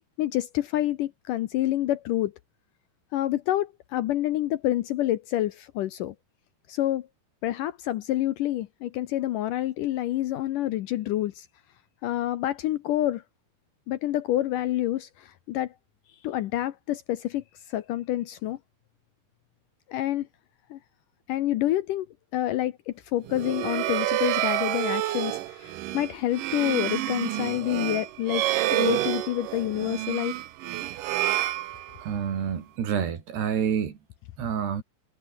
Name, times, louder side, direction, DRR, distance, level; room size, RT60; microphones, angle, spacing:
voice 1, 0.2-2.3 3.1-6.1 6.7-7.1 7.4-11.5 12.0-13.2 13.9-15.7 16.2-18.6 19.9-20.3 20.7-20.8 21.3-22.1 22.3-30.4, left 14 dB, 75° left, 2.1 m, -28 dB
sound 1, 23.2-32.3, right 15 dB, 70° right, 2.3 m, -28 dB
voice 2, 32.1-33.9 34.4-34.8, right 8 dB, 90° right, 5.4 m, -28 dB
omnidirectional pair, 4.6 m